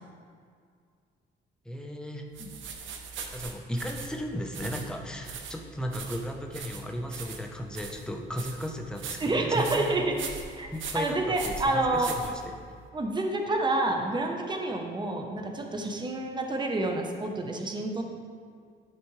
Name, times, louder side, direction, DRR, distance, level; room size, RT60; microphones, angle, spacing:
voice 1, 1.6-2.3 3.3-9.9 10.7-11.2 11.4-12.4, equal, 5° left, 2 dB, 0.9 m, -35 dB
sound 1, 2.3-12.8, right 5 dB, 75° right, 0.9 m, -41 dB
voice 2, 9.2-10.1 10.5-12.1 12.9-18.0, right 2 dB, 20° right, 3 dB, 0.9 m, -28 dB
12.0 x 4.2 x 3.3 m, 2.1 s
cardioid pair, 90°, 20 cm